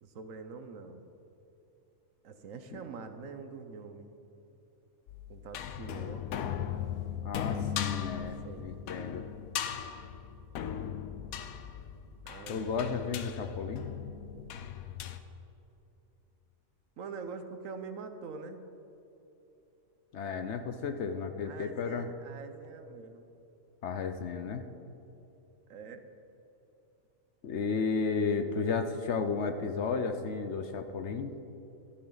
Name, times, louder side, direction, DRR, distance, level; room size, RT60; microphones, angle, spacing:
voice 1, 0.0-1.0 2.2-4.1 5.3-6.3 8.4-8.8 10.6-10.8 12.2-13.2 17.0-18.6 21.4-23.3 25.7-26.0, right 4 dB, 70° right, 8 dB, 1.2 m, -44 dB
sound 1, 5.1-15.2, left 9 dB, 80° left, 1.1 m, -38 dB
voice 2, 7.2-9.2 12.5-13.8 20.1-22.1 23.8-24.6 27.4-31.3, left 5 dB, 60° left, 7 dB, 0.9 m, -33 dB
13.0 x 12.5 x 4.0 m, 2.9 s
omnidirectional pair, 1.4 m